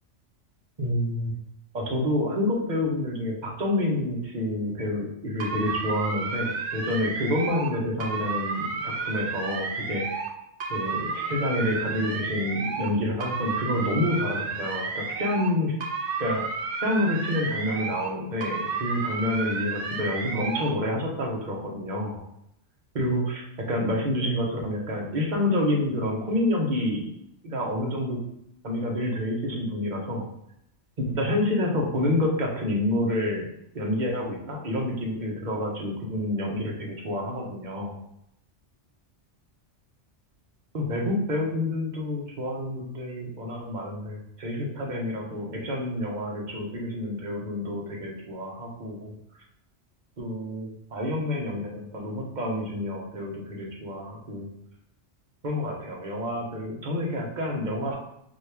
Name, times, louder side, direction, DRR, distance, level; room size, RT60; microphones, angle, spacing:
voice 1, 0.8-1.3 1.7-10.2 10.7-15.7 16.2-16.4 16.8-22.2 22.9-27.0 27.4-28.2 28.6-30.3 31.0-33.5 33.7-38.0 40.7-49.1 50.2-54.5 55.4-58.0, left 1 dB, 45° right, -2 dB, 1.1 m, -28 dB
sound 1, 5.4-7.7 8.0-10.3 10.6-12.9 13.2-15.5 15.8-18.1 18.4-20.7, right 4 dB, 75° right, 1.0 m, -31 dB
4.1 x 3.1 x 3.4 m, 0.76 s
omnidirectional pair, 1.2 m